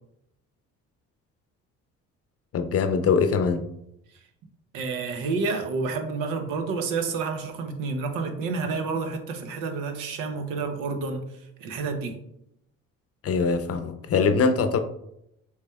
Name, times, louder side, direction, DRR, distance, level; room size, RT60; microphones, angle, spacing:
voice 1, 2.5-3.6 13.2-14.8, left 5 dB, 45° left, 9 dB, 0.6 m, -22 dB
voice 2, 4.7-12.2, right 4 dB, 80° right, 6 dB, 0.8 m, -29 dB
6.1 x 3.3 x 2.3 m, 0.79 s
supercardioid pair, 65°, 33 cm